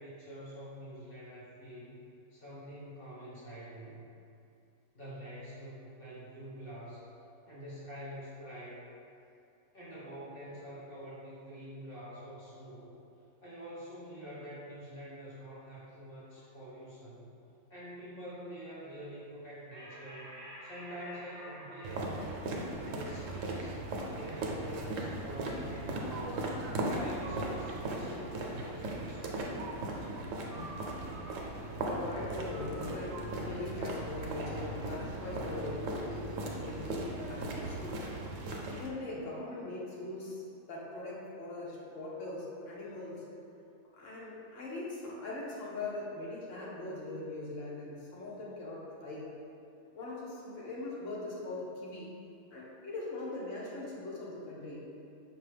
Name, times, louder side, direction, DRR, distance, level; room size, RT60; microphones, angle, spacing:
voice 1, 0.0-2.0 2.3-4.1 4.9-7.1 7.5-8.9 9.7-12.9 13.4-17.4 17.7-20.3 20.6-22.2 22.6-23.8 24.0-26.4 26.9-29.9, equal, 45° left, -9 dB, 1.4 m, -46 dB
sound 1, 19.7-26.6, equal, 20° right, 0.8 m, -52 dB
sound 2, 21.8-38.9, right 2 dB, 90° right, 1.0 m, -38 dB
voice 2, 31.8-38.0 38.7-40.4 40.7-43.2 43.9-49.3 49.9-52.1 52.5-54.8, left 2 dB, 75° left, -5 dB, 1.2 m, -41 dB
5.2 x 2.7 x 3.3 m, 2.6 s
omnidirectional pair, 1.3 m